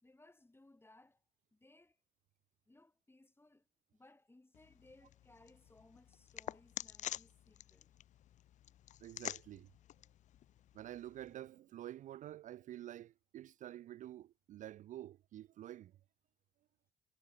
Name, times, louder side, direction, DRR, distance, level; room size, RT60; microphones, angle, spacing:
voice 1, 0.0-1.2 1.5-2.0 2.7-8.0, left 2 dB, 15° left, 5.0 m, -64 dB
sound 1, 4.5-11.3, left 12 dB, 45° left, 0.4 m, -49 dB
voice 2, 9.0-9.7 10.7-16.0, right 13 dB, 50° right, 0.4 m, -49 dB
hypercardioid pair, 60°, 17 cm